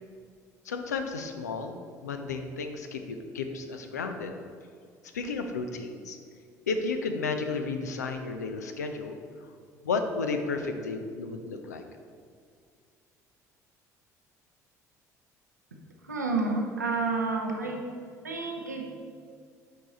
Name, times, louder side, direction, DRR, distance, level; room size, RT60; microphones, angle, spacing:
voice 1, 0.6-4.3 5.1-6.2 6.7-9.2 9.8-11.8, left 4 dB, 75° left, 6 dB, 0.5 m, -33 dB
voice 2, 16.1-17.8 18.2-18.9, right 3 dB, 85° right, 1 dB, 0.8 m, -29 dB
7.8 x 4.8 x 4.0 m, 2.1 s
figure-of-eight pair, 55°, 9 cm